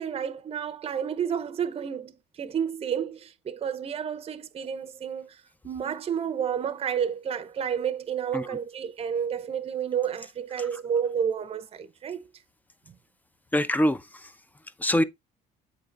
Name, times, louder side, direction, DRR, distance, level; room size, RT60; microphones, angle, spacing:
voice 1, 0.0-5.4 5.6-12.3, right 8 dB, 35° right, 0.7 m, -30 dB
voice 2, 13.5-14.3 14.8-15.0, equal, 10° left, 0.5 m, -24 dB
8.0 x 3.8 x 3.3 m
cardioid pair, 110°, 17 cm